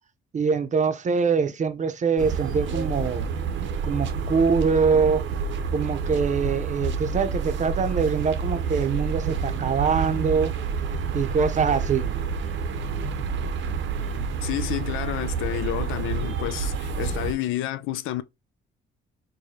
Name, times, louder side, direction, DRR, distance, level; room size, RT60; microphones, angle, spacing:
voice 1, 0.3-3.3 3.8-5.2 5.7-10.5 11.1-12.1, right 5 dB, 40° right, 0.6 m, -23 dB
sound 1, 2.2-17.3, right 5 dB, 70° right, 0.7 m, -28 dB
voice 2, 14.1-18.2, left 13 dB, 85° left, 0.4 m, -30 dB
4.7 x 2.2 x 2.7 m
cardioid pair, 90°, 20 cm